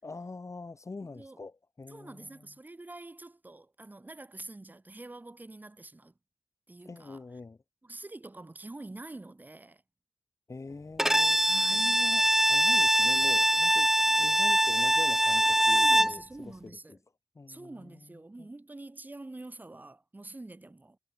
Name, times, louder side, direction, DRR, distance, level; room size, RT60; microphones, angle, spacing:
voice 1, 0.0-2.4 6.8-7.6 10.5-13.9 14.2-17.0 17.3-18.5, left 3 dB, 35° left, 6.3 m, -44 dB
voice 2, 1.0-1.4 1.9-6.1 6.7-7.2 7.8-9.8 11.5-12.0 15.7-17.0 17.5-21.0, right 2 dB, 20° right, 2.2 m, -46 dB
Bowed string instrument, 11.0-16.2, equal, 5° right, 0.5 m, -23 dB
wide cardioid pair, 105°, 9 cm